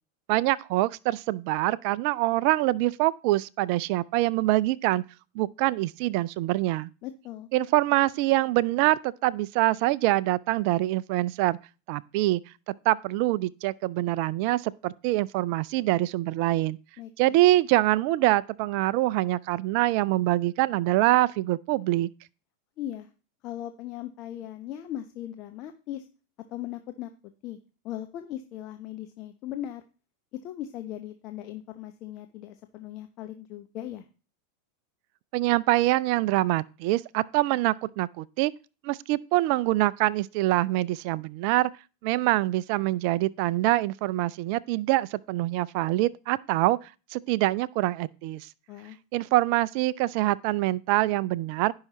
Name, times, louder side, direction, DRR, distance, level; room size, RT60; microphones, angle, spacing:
voice 1, 0.3-5.0 5.4-6.9 7.5-11.6 11.9-12.4 12.9-16.8 17.2-22.1 35.3-38.5 38.8-41.7 42.0-48.5 49.1-51.7, right 17 dB, 50° right, 0.3 m, -25 dB
voice 2, 7.0-7.5 17.0-17.4 22.8-23.1 23.4-26.0 26.5-27.1 27.4-27.6 27.8-29.8 30.4-34.0 48.7-49.0, left 12 dB, 40° left, 0.9 m, -38 dB
16.0 x 5.7 x 3.0 m
figure-of-eight pair, 85°, 0 cm